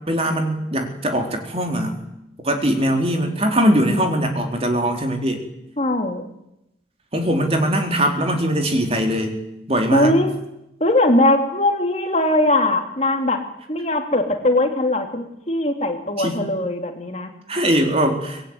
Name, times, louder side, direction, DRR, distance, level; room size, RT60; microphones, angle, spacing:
voice 1, 0.1-2.0 2.4-5.4 7.1-9.4 9.7-10.2 16.2-16.4 17.5-18.4, equal, 35° right, 4 dB, 3.8 m, -21 dB
voice 2, 5.8-6.2 9.9-10.3 10.8-13.4 13.7-17.3, left 1 dB, 35° left, 4 dB, 2.9 m, -20 dB
24.5 x 21.0 x 9.6 m, 0.87 s
head